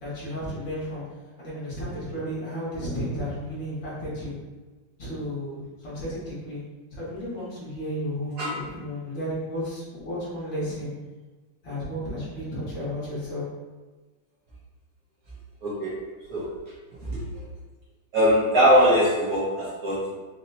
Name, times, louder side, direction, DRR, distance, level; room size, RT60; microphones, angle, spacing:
voice 1, 0.0-1.0 1.4-4.3 5.0-6.6 6.9-10.9 11.6-13.5, equal, 65° left, -10 dB, 2.4 m, -33 dB
voice 2, 15.6-16.0 16.3-16.5 17.0-17.4 18.1-20.2, equal, 55° right, -7 dB, 1.4 m, -22 dB
5.2 x 2.8 x 2.8 m, 1.2 s
omnidirectional pair, 2.3 m